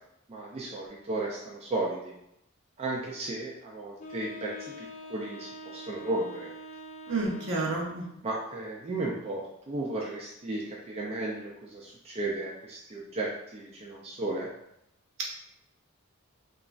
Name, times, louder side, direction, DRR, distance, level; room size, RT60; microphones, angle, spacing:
voice 1, 0.3-2.1 2.8-6.5 8.2-14.5, right 2 dB, 30° right, -4 dB, 0.4 m, -34 dB
Wind instrument woodwind instrument, 4.0-8.1, left 1 dB, 40° left, 0.5 m, -44 dB
voice 2, 7.1-8.0, right 2 dB, 65° right, -2 dB, 0.7 m, -30 dB
2.9 x 2.4 x 2.4 m, 0.79 s
head